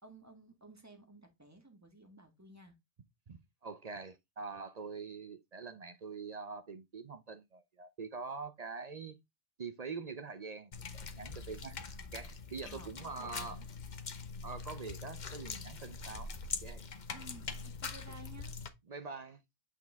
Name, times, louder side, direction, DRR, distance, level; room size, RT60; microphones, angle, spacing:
voice 1, 0.0-2.7 12.6-13.6 17.1-18.5, right 2 dB, 15° right, 1.6 m, -55 dB
voice 2, 3.3-9.2 9.6-11.8 12.1-13.6 14.4-16.3 16.6-16.8 18.9-19.4, right 4 dB, 45° right, 0.6 m, -44 dB
sound 1, 10.7-18.7, left 5 dB, 45° left, 0.8 m, -43 dB
8.2 x 4.6 x 3.4 m
omnidirectional pair, 1.2 m